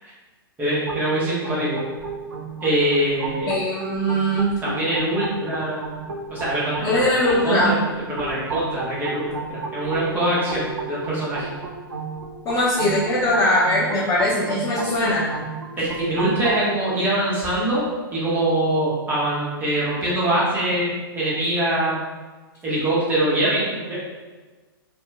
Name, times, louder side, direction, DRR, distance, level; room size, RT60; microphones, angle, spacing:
voice 1, 0.6-1.8 2.6-3.6 4.6-5.8 6.3-7.1 7.4-7.8 8.1-11.5 15.8-20.9 21.1-22.0 22.6-23.9, right 1 dB, 15° right, -8 dB, 1.1 m, -23 dB
sound 1, 0.9-16.6, right 3 dB, 75° right, 0.5 m, -33 dB
voice 2, 3.5-4.5 6.8-7.7 12.4-15.3, left 1 dB, 25° left, -9 dB, 0.8 m, -21 dB
3.0 x 2.8 x 2.2 m, 1.3 s
figure-of-eight pair, 110°, 12 cm